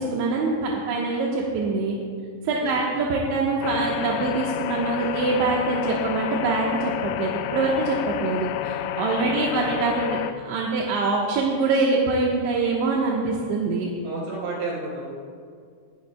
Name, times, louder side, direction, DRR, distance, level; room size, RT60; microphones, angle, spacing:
voice 1, 0.0-2.0 2.4-10.2 10.4-13.9, right 3 dB, 70° right, -3 dB, 3.2 m, -24 dB
voice 2, 2.6-3.0 9.3-9.7 14.0-15.1, right 3 dB, 50° right, -5 dB, 5.9 m, -32 dB
sound 1, 3.6-10.3, left 12 dB, 85° left, 3.1 m, -30 dB
21.5 x 15.5 x 2.2 m, 2.2 s
omnidirectional pair, 5.8 m